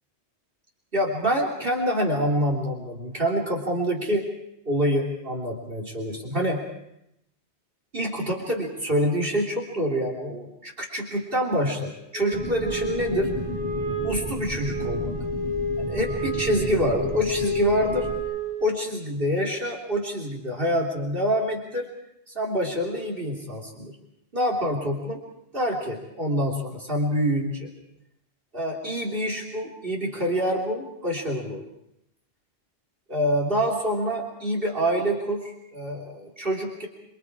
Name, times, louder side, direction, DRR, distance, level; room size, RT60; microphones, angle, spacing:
voice 1, 0.9-4.3 4.7-6.6 7.9-13.3 14.0-15.1 15.8-18.1 18.6-21.9 22.3-24.0 24.3-25.2 25.5-27.7 28.5-31.6 33.1-36.9, equal, 50° right, 0 dB, 3.5 m, -26 dB
Wind instrument woodwind instrument, 12.1-18.9, equal, 60° left, 4.6 m, -30 dB
sound 1, 12.3-18.2, left 1 dB, 20° right, 4.4 m, -34 dB
29.0 x 24.5 x 4.8 m, 0.83 s
omnidirectional pair, 1.2 m